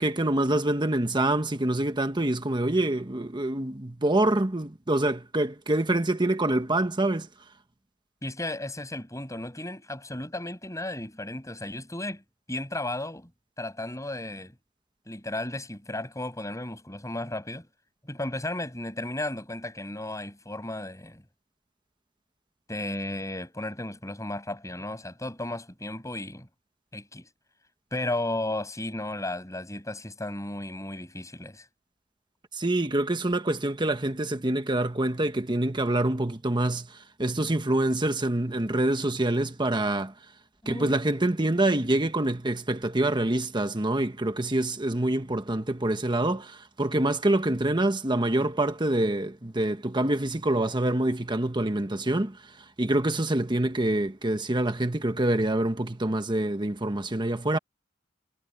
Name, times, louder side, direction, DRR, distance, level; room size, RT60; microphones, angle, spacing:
voice 1, 0.0-7.3 32.5-40.1 40.7-52.4 52.8-57.6, right 1 dB, 25° right, 1.3 m, -26 dB
voice 2, 8.2-12.2 12.5-13.3 13.6-14.5 15.1-17.7 18.0-21.2 22.7-26.5 26.9-27.3 27.9-31.6 40.6-40.9, left 1 dB, 15° left, 7.5 m, -34 dB
head